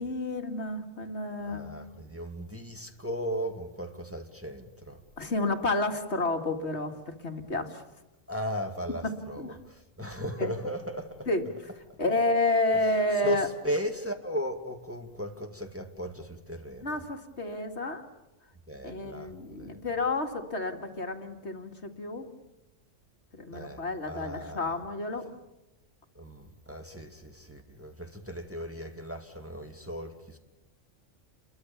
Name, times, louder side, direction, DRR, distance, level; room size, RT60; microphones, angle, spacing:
voice 1, 0.0-1.7 5.2-7.8 9.0-9.6 10.4-10.5 11.3-11.5 12.0-13.5 16.8-18.1 18.8-22.3 23.3-25.3, left 2 dB, 60° left, 2.3 m, -30 dB
voice 2, 1.4-5.0 8.3-11.3 13.2-17.0 18.7-19.8 23.5-24.8 26.2-30.4, equal, 10° right, 2.2 m, -36 dB
30.0 x 23.0 x 7.1 m
omnidirectional pair, 1.3 m